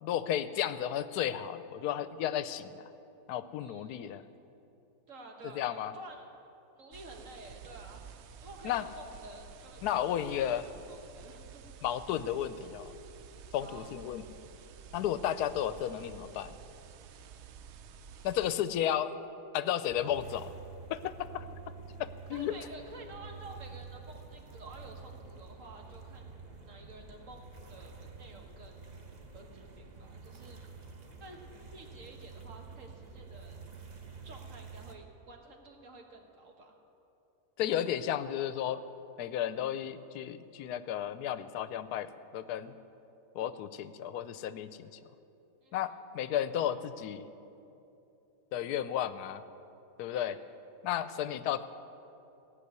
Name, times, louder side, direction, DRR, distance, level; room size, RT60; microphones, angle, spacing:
voice 1, 0.0-2.8 3.3-4.2 5.4-5.9 8.6-8.8 9.8-10.7 11.8-12.9 13.5-14.2 14.9-16.5 18.2-19.1 19.5-20.5 20.9-21.5 22.0-22.5 37.6-38.8 39.2-42.7 43.3-44.9 45.7-47.3 48.5-49.4 50.0-50.4 50.8-51.7, left 10 dB, 75° left, 13 dB, 1.1 m, -33 dB
voice 2, 3.6-4.3 5.1-6.3 6.7-11.6 13.6-13.9 22.3-26.4 26.6-28.8 29.3-30.6 31.2-33.6 34.2-36.7 45.6-46.0 50.0-50.4, right 2 dB, 55° right, 2 dB, 1.6 m, -51 dB
sound 1, 6.9-18.5, right 6 dB, 75° right, 0.6 m, -51 dB
sound 2, 19.9-34.9, right 4 dB, 35° right, 0.8 m, -49 dB
16.5 x 5.7 x 9.5 m, 2.9 s
omnidirectional pair, 1.7 m